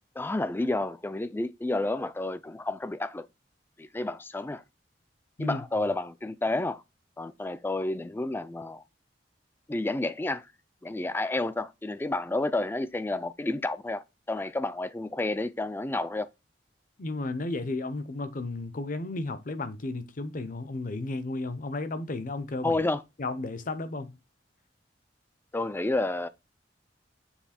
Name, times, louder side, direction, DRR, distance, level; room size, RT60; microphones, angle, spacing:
voice 1, 0.2-3.2 3.8-4.6 5.4-6.8 7.2-8.8 9.7-10.4 10.8-16.3 22.6-23.0 25.5-26.3, left 2 dB, 10° left, 0.3 m, -30 dB
voice 2, 17.0-22.8 23.2-24.2, left 2 dB, 45° left, 0.7 m, -33 dB
7.2 x 3.2 x 4.2 m
head